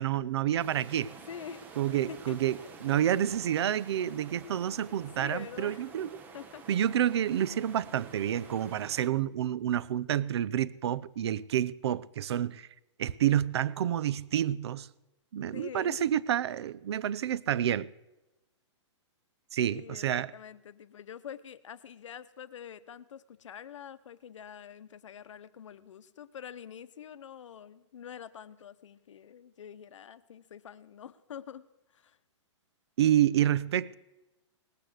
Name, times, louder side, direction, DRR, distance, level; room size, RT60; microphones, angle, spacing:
voice 1, 0.0-1.1 1.8-6.2 6.7-12.7 13.0-14.9 15.3-17.9 19.5-20.3 33.0-33.9, right 11 dB, 55° right, 0.5 m, -29 dB
sound 1, 0.6-9.1, right 5 dB, 10° right, 0.6 m, -50 dB
voice 2, 1.3-1.7 2.1-2.4 4.9-5.9 6.3-6.6 15.5-16.0 19.7-31.7 31.9-32.2, left 8 dB, 75° left, 0.9 m, -46 dB
19.0 x 8.5 x 7.8 m
hypercardioid pair, 165°, 16 cm